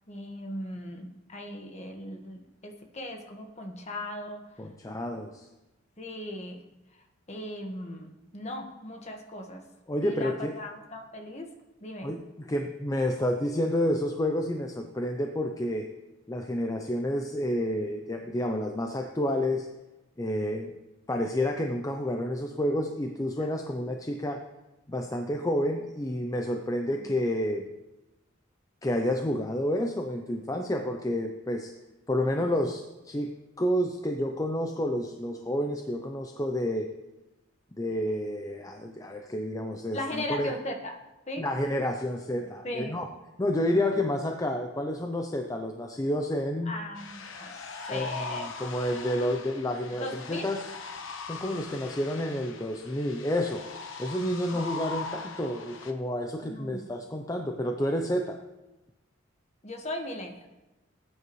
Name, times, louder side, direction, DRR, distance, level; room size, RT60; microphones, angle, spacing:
voice 1, 0.1-4.4 6.0-6.6 6.9-7.0 7.3-9.6 10.0-11.5 11.8-12.1 23.4-23.5 26.9-27.1 39.9-41.0 41.3-41.4 42.6-43.0 46.6-48.9 50.0-50.5 56.4-56.8 59.6-60.5, left 1 dB, 35° left, 3 dB, 1.5 m, -38 dB
voice 2, 4.6-5.5 9.9-10.5 12.0-15.9 16.3-19.7 20.2-20.7 21.1-24.4 24.9-27.7 28.8-31.7 32.1-36.9 37.8-40.5 41.4-43.1 43.4-46.7 47.9-48.1 48.4-50.6 51.3-53.6 54.0-58.4, left 1 dB, 15° left, 4 dB, 0.6 m, -29 dB
sound 1, 47.0-55.9, left 4 dB, 75° left, 1.2 m, -40 dB
19.0 x 9.4 x 3.1 m, 1.0 s
head